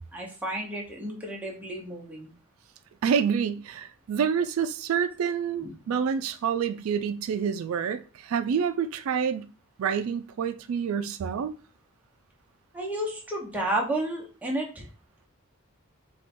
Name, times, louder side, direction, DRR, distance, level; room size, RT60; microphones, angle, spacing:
voice 1, 0.1-2.3 5.6-5.7 12.7-14.9, right 1 dB, 5° right, 0.9 m, -32 dB
voice 2, 3.0-9.5 9.8-11.5, right 7 dB, 90° right, 0.3 m, -27 dB
4.4 x 2.3 x 4.2 m
head